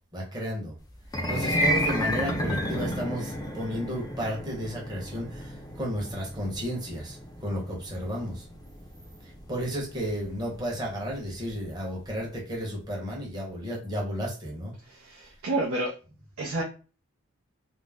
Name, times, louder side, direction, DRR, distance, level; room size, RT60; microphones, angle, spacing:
voice 1, 0.1-0.8 1.3-8.5 9.2-14.7, equal, 20° right, 0.9 m, -33 dB
sound 1, 1.0-11.3, equal, 20° left, 0.4 m, -32 dB
voice 2, 14.9-15.9 16.4-16.6, right 2 dB, 65° right, 0.5 m, -29 dB
2.5 x 2.0 x 3.3 m
head